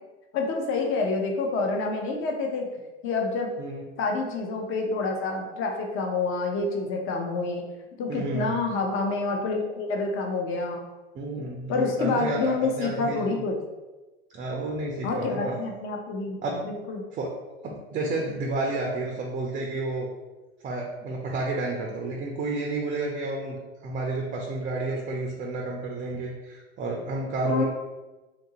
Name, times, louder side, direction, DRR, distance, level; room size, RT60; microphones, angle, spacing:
voice 1, 0.3-2.7 3.0-3.5 4.0-7.7 8.0-10.8 11.7-13.6 15.0-17.0 27.4-27.6, left 3 dB, 40° left, 1 dB, 0.7 m, -28 dB
voice 2, 8.1-8.5 11.1-13.4 14.3-15.6 16.4-16.6 17.1-17.3 17.6-20.1 20.6-27.6, right 2 dB, 25° right, 0 dB, 0.4 m, -31 dB
2.8 x 2.6 x 2.8 m, 1.1 s
hypercardioid pair, 100°, 33 cm